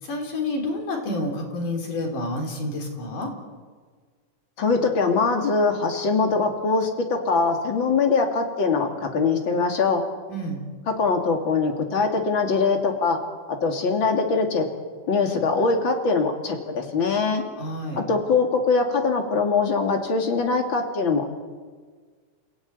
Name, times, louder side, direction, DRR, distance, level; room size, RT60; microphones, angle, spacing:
voice 1, 0.0-3.3 10.3-10.6 17.5-18.0, left 1 dB, 85° left, 2 dB, 5.6 m, -29 dB
voice 2, 4.6-10.0 10.9-13.2 13.6-14.7 15.1-17.4 18.0-21.3, left 4 dB, 40° left, 3 dB, 3.3 m, -22 dB
29.5 x 16.5 x 9.6 m, 1.5 s
omnidirectional pair, 3.6 m